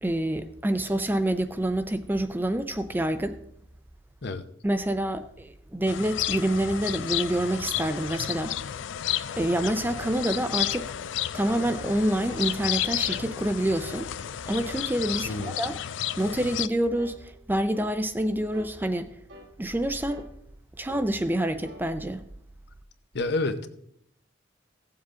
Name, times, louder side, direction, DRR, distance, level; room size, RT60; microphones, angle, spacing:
voice 1, 0.0-3.4 4.6-8.6 9.4-10.9 11.3-14.1 14.5-15.8 16.2-19.1 19.6-20.3 20.8-22.2, right 1 dB, 10° right, 0.4 m, -27 dB
sound 1, 5.9-16.7, left 11 dB, 75° left, 0.4 m, -32 dB
sound 2, 10.0-10.2 10.7-11.0 11.5-11.8 12.3-12.5 13.1-13.3 13.9-14.1 14.6-14.9 15.4-15.6 16.2-16.4 17.0-17.2 17.7-18.0 18.5-18.8 19.3-19.5 20.1-20.3 20.9-21.1 21.6-21.9, equal, 80° right, 1.6 m, -45 dB
voice 2, 23.1-23.7, left 2 dB, 60° left, 0.8 m, -28 dB
16.5 x 7.3 x 3.7 m
head